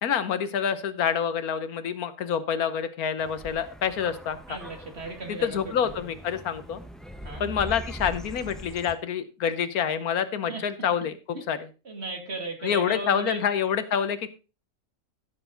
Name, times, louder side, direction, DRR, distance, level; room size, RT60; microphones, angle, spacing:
voice 1, 0.0-4.6 5.3-6.8 7.4-11.6 12.6-14.3, left 8 dB, 80° left, 12 dB, 1.5 m, -27 dB
sound 1, 3.2-8.9, right 1 dB, ahead, 0.9 m, -41 dB
voice 2, 4.5-6.0 7.2-7.5 10.5-10.6 11.5-11.6 11.8-13.4, right 2 dB, 45° right, 3 dB, 2.7 m, -36 dB
15.0 x 7.1 x 3.9 m, 0.32 s
omnidirectional pair, 1.5 m